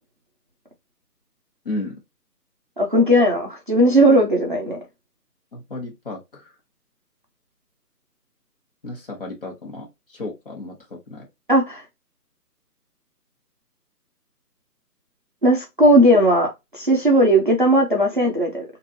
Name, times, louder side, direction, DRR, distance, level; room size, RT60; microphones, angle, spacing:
voice 1, 1.6-2.0 5.5-6.5 8.8-11.3, left 2 dB, 35° left, 1.1 m, -33 dB
voice 2, 2.8-4.8 11.5-11.8 15.4-18.6, right 1 dB, 35° right, 0.5 m, -17 dB
3.1 x 2.5 x 2.5 m
hypercardioid pair, 160°, 48 cm